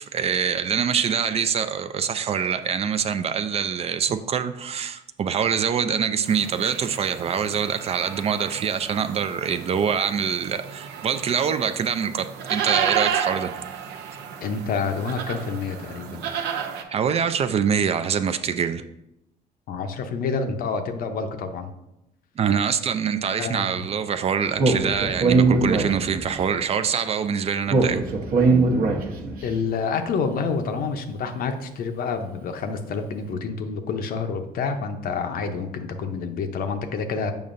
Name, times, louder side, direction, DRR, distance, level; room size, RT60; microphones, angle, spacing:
voice 1, 0.0-13.5 16.9-18.8 22.4-28.0, right 7 dB, 40° right, 10 dB, 0.3 m, -24 dB
sound 1, 6.3-16.8, right 8 dB, 85° right, 0.7 m, -32 dB
voice 2, 14.4-16.2 19.7-21.7 23.4-23.8 29.4-37.3, left 5 dB, 60° left, 7 dB, 0.7 m, -28 dB
Speech, 24.6-26.4 27.7-29.4, right 3 dB, 60° right, 1.0 m, -20 dB
7.0 x 5.3 x 2.6 m, 0.88 s
cardioid pair, 110°, 17 cm